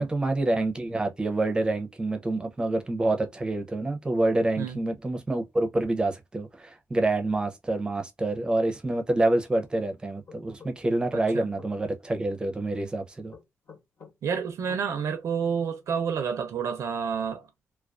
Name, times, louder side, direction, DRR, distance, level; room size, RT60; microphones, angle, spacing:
voice 1, 0.0-13.3, right 2 dB, 15° right, 0.5 m, -27 dB
sound 1, 10.3-11.7 13.3-14.9, left 6 dB, 55° left, 1.0 m, -49 dB
voice 2, 11.1-11.5 14.2-17.5, right 6 dB, 75° right, 0.4 m, -29 dB
2.3 x 2.2 x 2.3 m
wide cardioid pair, 145°, 5 cm